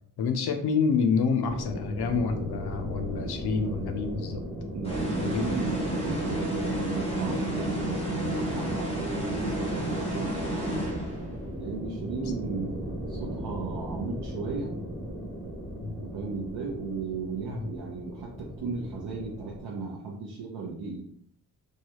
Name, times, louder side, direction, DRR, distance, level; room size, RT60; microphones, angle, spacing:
voice 1, 0.2-4.4 5.2-5.5 15.8-16.0 17.5-17.7, left 5 dB, 75° left, 6 dB, 0.6 m, -28 dB
sound 1, 1.4-19.6, right 1 dB, ahead, 0.5 m, -38 dB
voice 2, 4.7-10.8 11.6-14.7 15.9-21.0, right 4 dB, 85° right, -3 dB, 0.6 m, -36 dB
sound 2, 4.8-11.5, right 1 dB, 15° left, 1.0 m, -30 dB
3.2 x 2.3 x 2.9 m, 0.66 s
wide cardioid pair, 180°, 39 cm